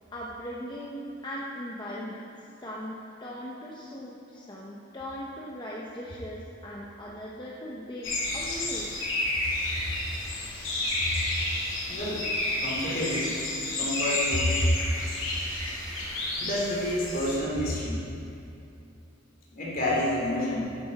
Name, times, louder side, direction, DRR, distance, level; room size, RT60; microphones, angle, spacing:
voice 1, 0.1-2.3 2.6-8.9, equal, 25° left, -4 dB, 0.9 m, -39 dB
sound 1, 8.0-17.4, left 2 dB, 90° left, 2.7 m, -31 dB
voice 2, 11.9-12.3 12.6-13.4 13.8-14.6 16.4-18.0 19.5-20.6, left 1 dB, 45° left, -4 dB, 3.0 m, -29 dB
13.5 x 10.0 x 4.2 m, 2.6 s
head